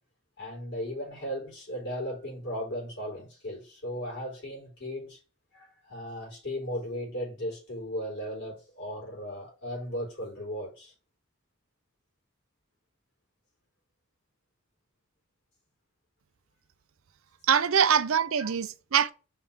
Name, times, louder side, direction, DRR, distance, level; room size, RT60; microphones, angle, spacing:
voice 1, 0.4-5.2 5.5-10.9 17.7-17.8 18.4-18.5, equal, 60° left, 4.0 m, -36 dB
voice 2, 17.5-19.1, right 7 dB, 80° right, 0.6 m, -23 dB
5.6 x 3.5 x 5.7 m
head